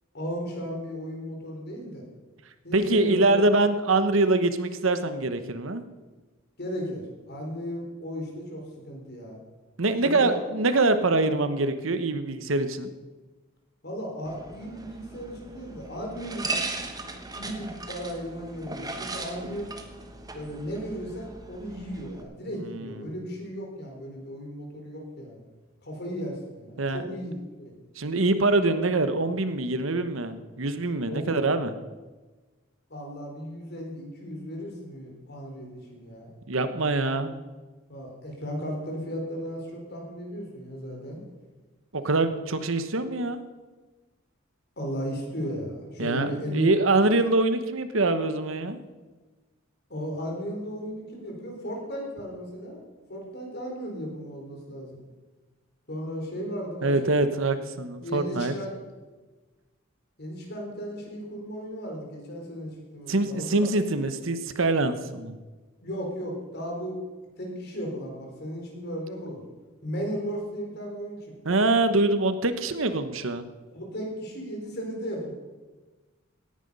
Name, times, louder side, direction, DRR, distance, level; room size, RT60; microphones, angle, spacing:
voice 1, 0.1-2.0 2.6-3.4 6.6-9.4 10.0-10.4 13.8-16.7 17.3-19.7 20.3-25.4 25.8-27.7 31.1-31.3 32.9-36.3 37.9-41.2 44.8-46.7 49.9-52.8 53.1-55.0 55.9-57.2 57.9-58.7 60.2-63.7 65.8-67.0 67.4-69.4 69.8-71.2 73.7-75.3, equal, 50° left, 0 dB, 4.1 m, -35 dB
voice 2, 2.7-5.8 9.8-12.9 22.7-23.1 26.8-27.0 28.0-31.7 36.5-37.3 41.9-43.4 46.0-48.8 56.8-58.5 63.1-65.3 71.4-73.5, right 2 dB, 70° right, 10 dB, 1.0 m, -24 dB
sound 1, 14.2-22.2, right 2 dB, 20° right, 1.2 m, -38 dB
17.5 x 10.5 x 5.4 m, 1.2 s
head